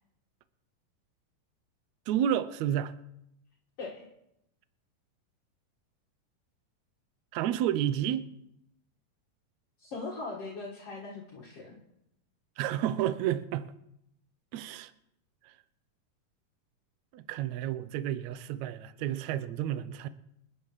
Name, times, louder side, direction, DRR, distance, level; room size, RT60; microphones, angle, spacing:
voice 1, 2.1-2.9 7.3-8.2 12.6-13.7 14.5-14.9 15.4-15.5 17.1-20.1, right 11 dB, 75° right, 1.8 m, -30 dB
voice 2, 9.8-11.8, left 3 dB, 50° left, 2.5 m, -40 dB
27.5 x 10.5 x 3.2 m
omnidirectional pair, 3.8 m